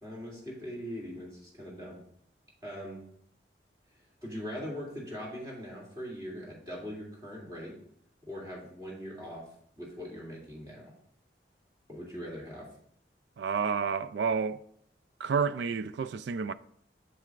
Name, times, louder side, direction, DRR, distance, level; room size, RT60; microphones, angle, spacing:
voice 1, 0.0-2.0 2.6-3.0 4.2-7.8 8.2-9.4 9.8-10.9 11.9-12.7, equal, 20° right, 2.7 m, -41 dB
voice 2, 13.4-14.6 15.2-16.5, right 6 dB, 70° right, 0.3 m, -30 dB
8.0 x 7.5 x 2.5 m
head